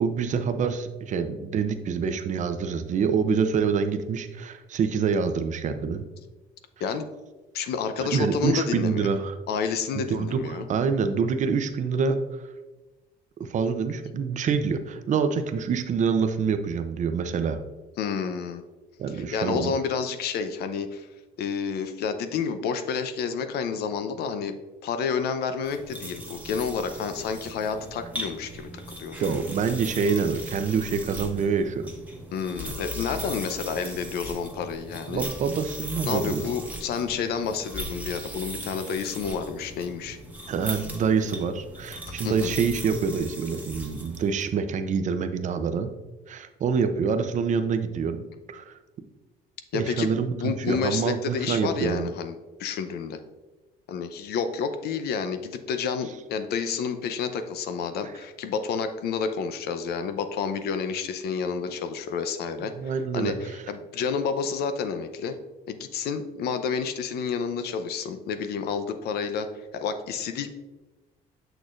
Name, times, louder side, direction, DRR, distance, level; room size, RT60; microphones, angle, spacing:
voice 1, 0.0-6.0 8.0-9.3 9.9-12.2 13.4-17.6 19.0-19.7 29.2-31.9 35.1-36.5 40.5-45.9 46.3-48.7 49.7-52.1 62.7-63.6, right 6 dB, 45° right, 9 dB, 0.6 m, -26 dB
voice 2, 7.5-9.1 9.5-10.7 18.0-18.6 19.1-21.1 21.4-24.5 24.8-28.7 29.0-29.4 32.3-35.2 36.0-40.2 42.1-42.6 49.7-53.2 53.9-62.7 63.1-65.4 65.7-69.5 69.7-70.5, left 6 dB, 70° left, 9 dB, 0.6 m, -30 dB
sound 1, 25.6-44.5, right 1 dB, 10° right, 1.2 m, -38 dB
6.7 x 6.3 x 2.5 m, 1.2 s
cardioid pair, 110°, 17 cm